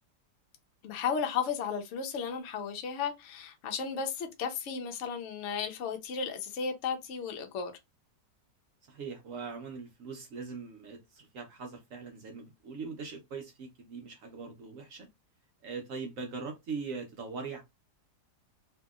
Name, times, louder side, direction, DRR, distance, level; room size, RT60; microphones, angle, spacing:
voice 1, 0.8-7.7, left 6 dB, 65° left, 0.7 m, -34 dB
voice 2, 8.9-15.1 15.6-17.6, right 5 dB, 65° right, 0.9 m, -41 dB
2.7 x 2.6 x 2.3 m
omnidirectional pair, 1.8 m